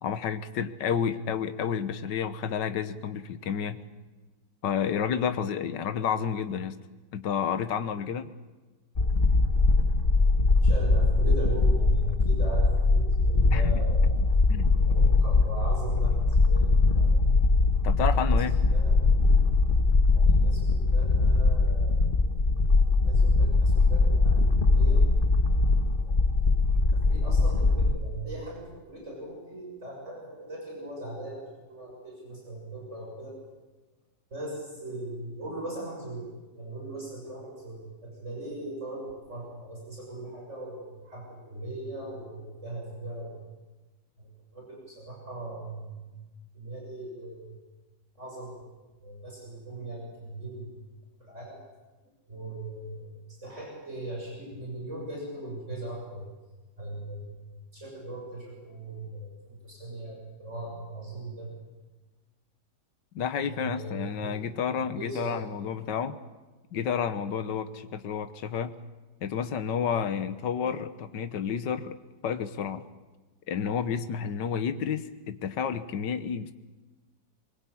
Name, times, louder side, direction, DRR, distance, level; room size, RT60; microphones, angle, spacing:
voice 1, 0.0-3.8 4.6-6.8 7.1-8.2 13.5-13.8 14.2-14.7 17.8-18.6 63.2-66.2 66.7-68.7 69.2-71.9 72.2-72.8 73.5-76.5, left 7 dB, 75° left, 10 dB, 1.8 m, -30 dB
sound 1, 9.0-28.0, left 3 dB, 30° left, 1.4 m, -22 dB
voice 2, 10.6-14.2 14.8-17.4 18.3-18.4 18.7-19.0 20.1-21.9 23.0-25.1 26.0-26.2 27.1-33.4 34.3-36.3 36.5-43.3 44.2-46.1 46.5-47.6 48.2-48.6 49.0-50.8 51.2-51.6 52.3-53.1 53.4-56.3 56.8-57.4 57.7-61.5 63.4-64.3 64.7-65.4, right 2 dB, 40° right, -2 dB, 7.5 m, -39 dB
24.0 x 22.0 x 8.6 m, 1.2 s
omnidirectional pair, 1.9 m